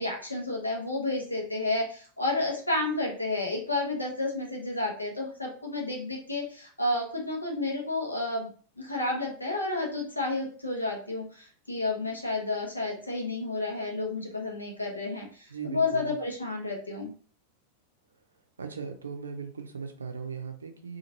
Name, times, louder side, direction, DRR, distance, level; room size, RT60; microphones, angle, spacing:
voice 1, 0.0-8.5 8.8-17.1, left 2 dB, 85° left, -1 dB, 0.8 m, -31 dB
voice 2, 15.5-16.2 18.6-21.0, right 6 dB, 75° right, 6 dB, 0.5 m, -38 dB
2.9 x 2.4 x 2.7 m, 0.42 s
figure-of-eight pair, 90°, 0 cm